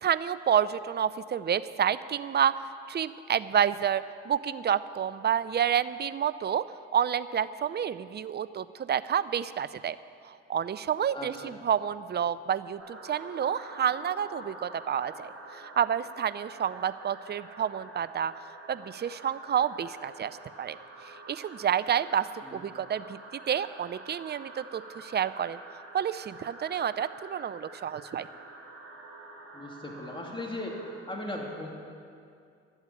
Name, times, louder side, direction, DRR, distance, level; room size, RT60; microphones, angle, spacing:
voice 1, 0.0-2.6 2.9-6.6 6.9-10.0 10.2-18.3 18.7-20.8 21.0-23.2 23.5-25.6 25.9-28.3, right 9 dB, 30° right, 15 dB, 0.5 m, -29 dB
voice 2, 11.1-11.6 22.4-22.6 29.5-30.8 31.1-31.7, left 1 dB, 15° left, 0 dB, 3.0 m, -38 dB
sound 1, 12.8-30.9, right 2 dB, 45° right, 4.0 m, -47 dB
12.0 x 8.1 x 8.6 m, 2.4 s
hypercardioid pair, 55°, 33 cm